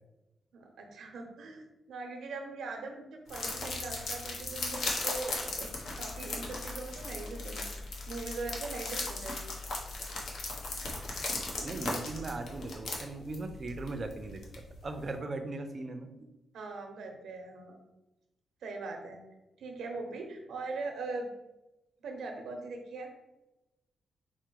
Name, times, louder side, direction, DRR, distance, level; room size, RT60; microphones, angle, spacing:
voice 1, 0.5-7.6 8.1-9.4 16.5-17.8 18.6-19.2 19.6-21.3 22.0-23.1, right 3 dB, 90° right, 3 dB, 0.8 m, -41 dB
sound 1, 3.3-15.0, left 2 dB, 75° left, 1.0 m, -37 dB
voice 2, 11.6-14.4 14.8-16.3, right 2 dB, 35° right, 6 dB, 0.5 m, -38 dB
4.8 x 2.1 x 4.5 m, 0.97 s
wide cardioid pair, 135°, 0 cm